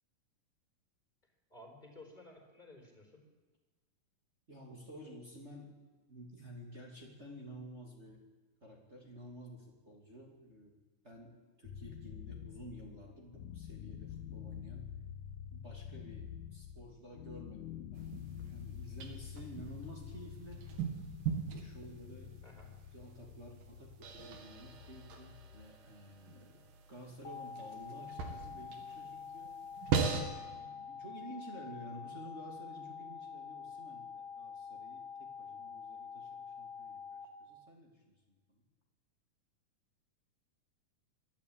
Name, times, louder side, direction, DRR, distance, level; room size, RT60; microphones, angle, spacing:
voice 1, 1.5-3.2 22.4-22.7, left 2 dB, 10° left, 2 dB, 4.1 m, -55 dB
voice 2, 4.5-5.8 6.1-8.2 8.6-14.9 15.5-20.7 21.5-26.6 26.9-29.6 30.2-38.6, equal, 20° right, -1 dB, 2.6 m, -52 dB
sound 1, 11.6-25.7, left 9 dB, 70° left, 2.1 m, -48 dB
sound 2, 18.0-30.2, right 6 dB, 80° right, 3.7 m, -41 dB
sound 3, 27.2-37.3, left 6 dB, 55° left, 2.6 m, -46 dB
22.5 x 13.5 x 8.8 m, 1.3 s
omnidirectional pair, 4.0 m